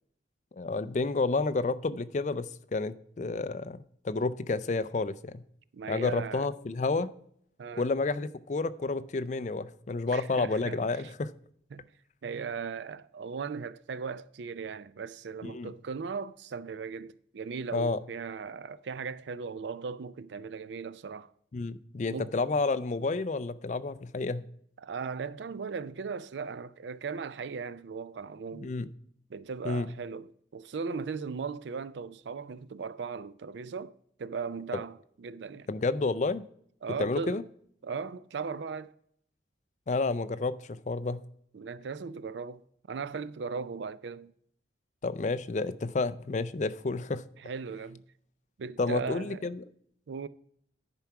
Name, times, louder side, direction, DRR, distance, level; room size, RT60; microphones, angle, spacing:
voice 1, 0.5-3.8 4.0-5.4 5.9-7.1 7.7-11.3 15.4-15.7 17.7-18.0 21.5-24.5 28.6-28.9 29.6-29.9 35.7-36.4 37.0-37.4 39.9-41.2 45.0-47.2 48.8-49.6, left 3 dB, 40° left, 0.4 m, -30 dB
voice 2, 5.7-6.5 7.6-7.9 10.1-11.1 11.7-11.9 12.2-21.3 22.1-22.3 24.8-28.7 29.3-33.9 34.2-35.7 36.8-37.4 37.8-39.0 41.5-42.6 42.9-44.3 47.4-48.0 48.6-49.5 50.1-50.3, right 5 dB, 70° right, 0.4 m, -38 dB
10.5 x 4.6 x 5.8 m
head